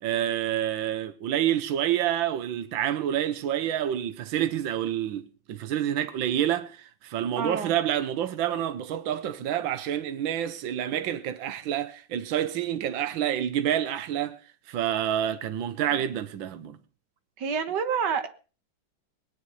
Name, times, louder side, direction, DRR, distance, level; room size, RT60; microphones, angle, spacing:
voice 1, 0.0-14.4 14.7-16.8, right 11 dB, 75° right, 1.7 m, -28 dB
voice 2, 7.4-7.7 17.4-18.3, right 6 dB, 60° right, 2.0 m, -28 dB
20.0 x 10.5 x 5.5 m
omnidirectional pair, 2.2 m